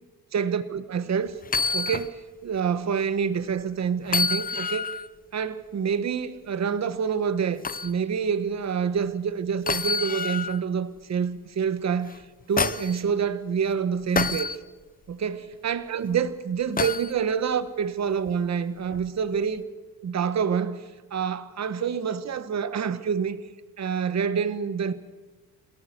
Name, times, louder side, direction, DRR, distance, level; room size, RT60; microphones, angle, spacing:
voice 1, 0.3-1.3 1.7-4.9 5.3-12.1 12.5-14.6 15.1-19.7 20.0-20.8 21.1-23.4 23.8-24.9, right 7 dB, 45° right, 1.1 m, -27 dB
sound 1, 1.4-2.1 2.6-2.7 4.1-5.1 7.6-7.9 9.7-10.6 12.1-13.0 14.2-14.6 16.8-17.1 18.9-19.1, left 5 dB, 25° left, 0.6 m, -27 dB
28.5 x 13.5 x 6.7 m
cardioid pair, 130°, 38 cm